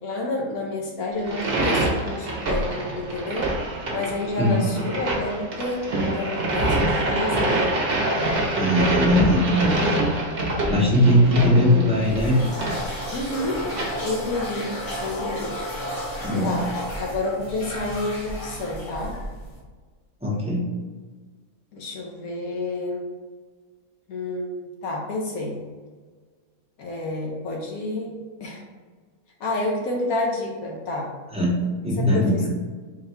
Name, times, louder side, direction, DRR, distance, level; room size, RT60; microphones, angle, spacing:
voice 1, 0.0-3.5 3.9-5.8 6.1-7.7 13.1-13.6 14.0-14.7 15.0-15.5 16.4-16.7 17.0-19.1 21.7-23.1 24.1-25.6 26.8-28.1 28.4-28.6 29.4-31.1 32.0-32.5, left 2 dB, 80° left, -2 dB, 1.2 m, -29 dB
sound 1, 1.2-13.8, right 1 dB, 50° right, 0.9 m, -25 dB
voice 2, 4.4-4.7 8.5-9.5 10.7-12.4 16.2-16.6 20.2-20.7 31.3-31.5 31.8-32.5, left 1 dB, 5° right, -6 dB, 0.7 m, -19 dB
sound 2, 11.9-19.6, left 1 dB, 55° left, 1.5 m, -33 dB
4.0 x 2.2 x 4.2 m, 1.5 s
omnidirectional pair, 1.5 m